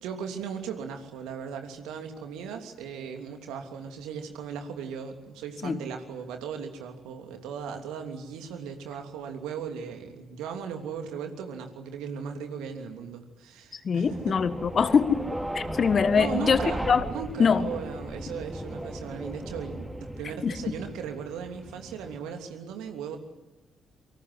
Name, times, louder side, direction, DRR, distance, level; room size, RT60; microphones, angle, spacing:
voice 1, 0.0-14.4 16.2-16.8 17.1-23.2, right 7 dB, 65° right, 5 dB, 3.0 m, -37 dB
voice 2, 13.8-16.6 16.9-17.1 17.4-17.7 20.4-20.5, left 6 dB, 45° left, 13 dB, 1.6 m, -23 dB
sound 1, 14.0-22.2, right 1 dB, 10° right, 4.3 m, -37 dB
27.0 x 25.0 x 8.0 m, 1.1 s
figure-of-eight pair, 40°, 0 cm